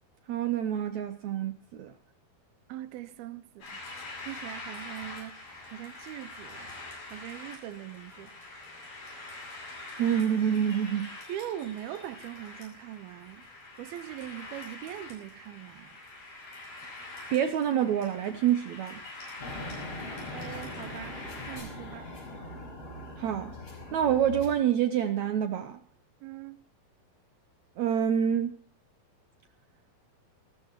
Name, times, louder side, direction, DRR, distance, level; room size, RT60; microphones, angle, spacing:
voice 1, 0.3-1.9 10.0-11.2 17.3-19.0 23.2-23.5 23.9-25.8 27.8-28.6, right 9 dB, 70° right, 1.8 m, -27 dB
voice 2, 2.7-3.8 4.2-6.8 7.1-8.3 11.3-13.4 13.8-16.0 20.3-21.2 21.5-22.1 26.2-26.6, right 12 dB, 90° right, 3.0 m, -41 dB
sound 1, 3.6-21.6, left 2 dB, 85° left, 9.7 m, -45 dB
sound 2, 19.4-24.5, left 1 dB, 40° left, 6.1 m, -41 dB
27.0 x 13.5 x 3.0 m
omnidirectional pair, 4.3 m